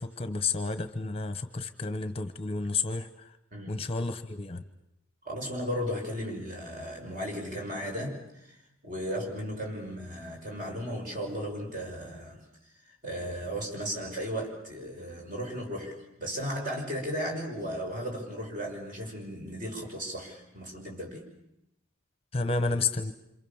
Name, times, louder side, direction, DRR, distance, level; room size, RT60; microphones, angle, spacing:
voice 1, 0.0-3.3 3.7-4.6 22.3-23.1, left 3 dB, 25° left, 10 dB, 1.0 m, -31 dB
voice 2, 3.5-3.8 5.2-8.5 8.8-12.4 13.0-21.2, equal, 40° right, 1 dB, 6.2 m, -35 dB
27.5 x 27.0 x 7.2 m, 0.84 s
head